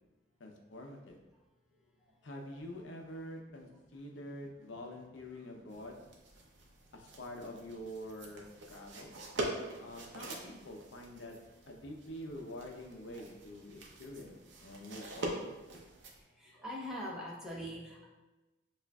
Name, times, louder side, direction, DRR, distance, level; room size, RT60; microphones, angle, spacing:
voice 1, 0.4-1.2 2.2-6.0 6.9-9.1 9.8-11.4 11.7-14.3 14.6-15.6, left 1 dB, 80° left, 2 dB, 0.7 m, -46 dB
sound 1, 5.7-16.2, right 1 dB, 75° right, 0.7 m, -44 dB
voice 2, 16.3-18.1, equal, 5° right, -6 dB, 0.8 m, -42 dB
6.9 x 2.5 x 2.3 m, 1.1 s
head